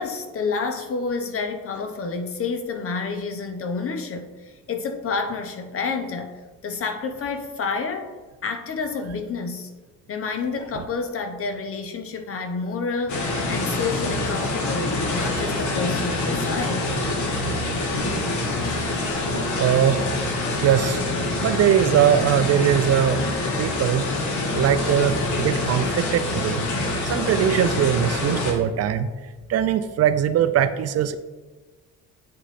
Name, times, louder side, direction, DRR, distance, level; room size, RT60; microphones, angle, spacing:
voice 1, 0.0-6.4 6.6-8.1 8.4-9.7 10.1-16.8, left 4 dB, 45° left, 7 dB, 0.8 m, -29 dB
sound 1, 13.1-28.5, left 2 dB, 75° left, 1.2 m, -25 dB
voice 2, 19.6-20.1 20.5-21.0 21.4-23.3 23.6-24.0 24.5-26.6 27.0-29.1 29.5-31.2, right 10 dB, 55° right, 12 dB, 0.4 m, -21 dB
8.6 x 3.0 x 4.1 m, 1.3 s
cardioid pair, 90°, 30 cm